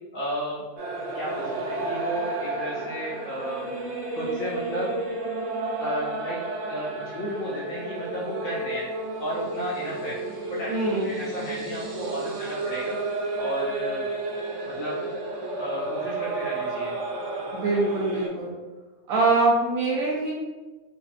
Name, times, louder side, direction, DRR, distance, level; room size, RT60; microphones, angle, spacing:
voice 1, 0.1-0.6 1.1-3.7 4.1-4.9 5.8-6.4 6.7-8.9 9.2-10.2 10.5-13.0 13.3-14.1 14.6-15.0 15.6-16.9, equal, 65° left, -7 dB, 0.8 m, -33 dB
sound 1, 0.8-18.3, right 2 dB, 90° right, 0.6 m, -32 dB
voice 2, 10.7-11.1 17.5-18.5 19.1-20.3, right 3 dB, 70° right, -3 dB, 0.9 m, -23 dB
2.6 x 2.5 x 2.4 m, 1.2 s
omnidirectional pair, 1.7 m